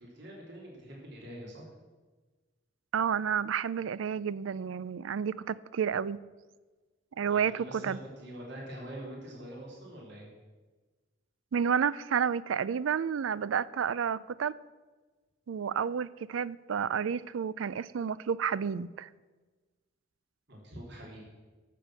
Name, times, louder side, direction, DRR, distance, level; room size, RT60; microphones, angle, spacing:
voice 1, 0.0-1.6 7.3-10.3 20.5-21.2, equal, 60° right, 3.3 m, -44 dB
voice 2, 2.9-6.2 7.2-8.0 11.5-14.6 15.5-19.1, right 7 dB, 85° right, 0.4 m, -30 dB
13.0 x 6.7 x 7.5 m
head